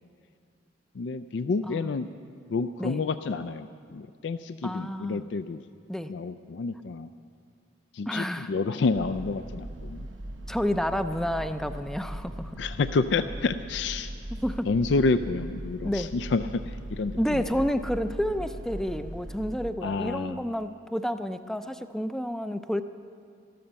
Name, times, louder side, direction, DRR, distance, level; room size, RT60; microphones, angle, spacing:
voice 1, 0.9-2.1 2.5-5.6 6.1-7.1 7.9-10.1 12.6-14.1 14.7-17.7 19.8-20.4, left 4 dB, 70° left, 11 dB, 0.4 m, -29 dB
voice 2, 1.6-2.1 2.8-3.0 4.6-5.2 5.9-6.1 8.1-8.5 10.5-12.5 14.4-14.7 15.8-16.1 17.2-22.8, equal, 5° left, 9 dB, 0.4 m, -30 dB
sound 1, 8.9-19.7, right 1 dB, 85° right, 1.1 m, -39 dB
13.5 x 12.5 x 7.0 m, 2.4 s
head